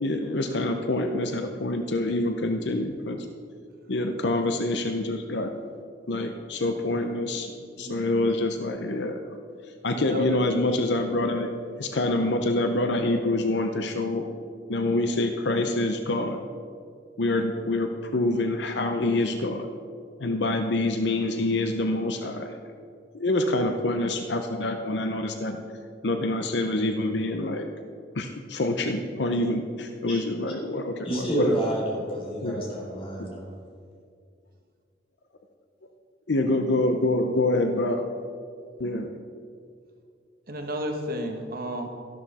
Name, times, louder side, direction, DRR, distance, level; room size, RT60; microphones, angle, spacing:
voice 1, 0.0-3.3 3.9-5.5 6.1-7.5 7.8-9.2 9.8-11.5 11.8-14.3 14.7-16.4 17.2-19.7 20.2-22.5 23.1-25.6 26.0-27.7 28.1-31.6 32.4-32.6 33.2-33.3 36.3-38.0 38.8-39.1, left 2 dB, 65° left, 6 dB, 0.7 m, -26 dB
voice 2, 9.9-10.4 40.5-41.9, equal, 55° right, 4 dB, 1.2 m, -32 dB
voice 3, 31.0-33.5, right 1 dB, 30° left, -3 dB, 3.5 m, -28 dB
13.0 x 12.0 x 4.2 m, 2.3 s
head